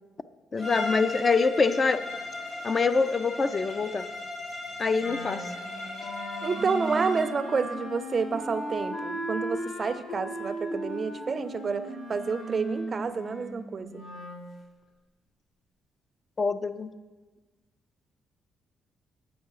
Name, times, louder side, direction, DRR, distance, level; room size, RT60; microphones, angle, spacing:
voice 1, 0.5-2.0 2.6-4.1 4.8-5.4 16.4-16.9, left 4 dB, 35° left, 11 dB, 0.3 m, -25 dB
Bowed string instrument, 0.6-7.4, left 2 dB, 60° left, 2.2 m, -37 dB
Wind instrument woodwind instrument, 5.0-14.5, right 1 dB, 80° left, 1.8 m, -37 dB
voice 2, 6.4-14.0, right 5 dB, 40° right, 12 dB, 0.4 m, -29 dB
8.5 x 5.3 x 4.7 m, 1.3 s
cardioid pair, 90°, 0 cm